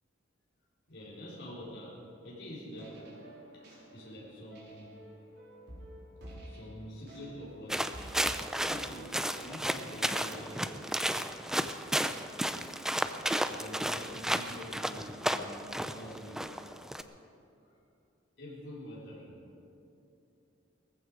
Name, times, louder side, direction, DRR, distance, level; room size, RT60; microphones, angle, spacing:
voice 1, 0.9-3.0 3.5-3.7 3.9-4.9 6.4-10.6 13.5-16.5 17.3-17.8 18.4-19.5, equal, 60° left, -6 dB, 4.2 m, -46 dB
sound 1, 2.7-11.0, right 1 dB, 60° right, 4.4 m, -51 dB
sound 2, 7.7-17.0, right 1 dB, 5° right, 0.4 m, -33 dB
19.0 x 15.0 x 4.8 m, 2.7 s
head